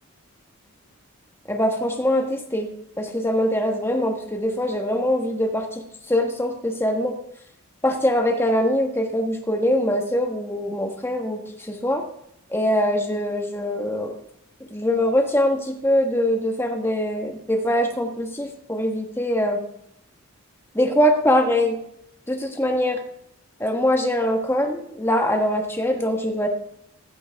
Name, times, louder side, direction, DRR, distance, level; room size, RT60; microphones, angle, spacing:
voice 1, 1.5-2.7 3.0-7.2 7.8-12.0 12.5-14.1 14.7-19.6 20.7-21.8 22.3-23.0 23.6-26.5, left 1 dB, 10° left, 3 dB, 1.3 m, -23 dB
15.5 x 13.0 x 3.5 m, 0.76 s
head